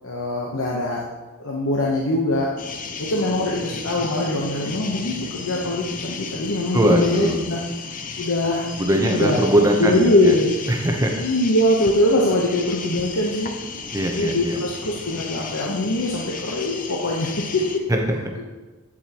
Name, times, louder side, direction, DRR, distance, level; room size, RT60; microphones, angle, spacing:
voice 1, 0.0-1.0 1.4-2.5 3.0-7.6 8.2-8.7 9.0-9.5 9.8-10.5 11.2-13.5 14.1-17.8, left 1 dB, 60° left, -3 dB, 0.9 m, -22 dB
sound 1, 2.6-17.8, left 5 dB, 35° left, 0.6 m, -34 dB
voice 2, 6.7-7.4 8.8-10.3 10.7-11.2 13.9-14.6 17.9-18.3, right 1 dB, 15° right, 2 dB, 0.8 m, -21 dB
8.9 x 7.3 x 3.0 m, 1.2 s
head